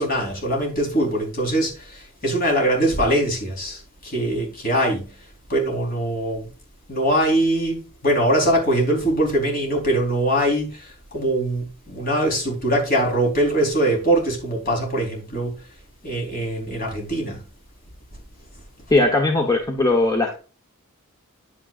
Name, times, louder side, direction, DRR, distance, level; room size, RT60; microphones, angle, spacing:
voice 1, 0.0-5.1 5.5-6.5 6.9-15.5 16.0-17.4, right 1 dB, 40° left, 4.2 m, -22 dB
voice 2, 18.9-20.4, left 2 dB, 15° left, 1.1 m, -19 dB
9.8 x 8.9 x 2.5 m
head